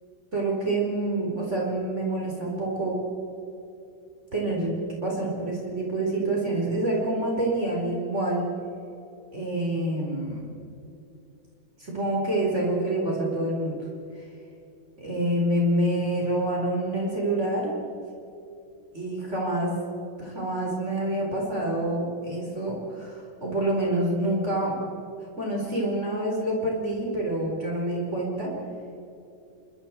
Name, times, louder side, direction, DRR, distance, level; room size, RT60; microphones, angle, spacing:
voice 1, 0.3-3.0 4.3-8.4 9.3-10.5 11.8-13.7 15.0-17.7 18.9-19.7 20.2-24.7 25.4-28.5, right 1 dB, 35° right, -3 dB, 4.8 m, -27 dB
28.0 x 25.0 x 4.6 m, 2.7 s
omnidirectional pair, 2.1 m